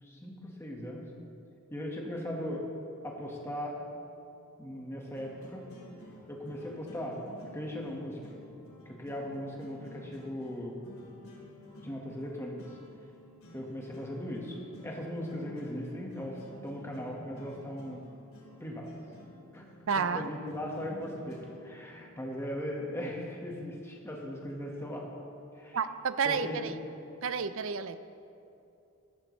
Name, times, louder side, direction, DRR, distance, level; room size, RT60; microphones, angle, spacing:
voice 1, 0.0-1.1 1.7-2.6 3.0-3.7 4.6-5.6 6.3-7.2 7.5-8.2 8.8-10.8 11.8-12.6 13.5-18.0 18.6-18.9 19.5-19.6 20.0-25.0 25.5-25.8 26.2-26.6, left 1 dB, 10° left, -2 dB, 1.6 m, -38 dB
sound 1, 3.8-22.6, left 1 dB, 75° left, 3.2 m, -52 dB
voice 2, 19.9-20.3 25.7-26.8 27.2-28.0, right 6 dB, 65° right, 12 dB, 0.5 m, -30 dB
14.0 x 12.0 x 3.2 m, 2.7 s
head